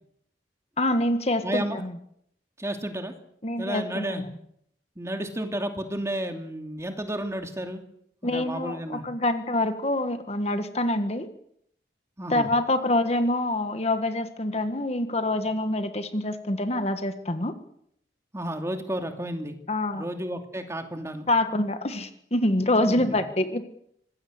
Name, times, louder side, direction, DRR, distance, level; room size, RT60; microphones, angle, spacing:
voice 1, 0.8-1.9 3.4-4.2 8.2-11.3 12.3-17.5 19.7-20.0 21.3-23.6, left 1 dB, 35° left, 9 dB, 1.7 m, -26 dB
voice 2, 1.4-1.8 2.6-3.1 3.6-4.2 5.0-7.8 8.2-9.0 12.2-12.5 18.3-19.5 19.9-21.3 22.8-23.2, right 1 dB, 15° right, 5 dB, 2.8 m, -32 dB
25.5 x 20.0 x 8.1 m, 0.72 s
head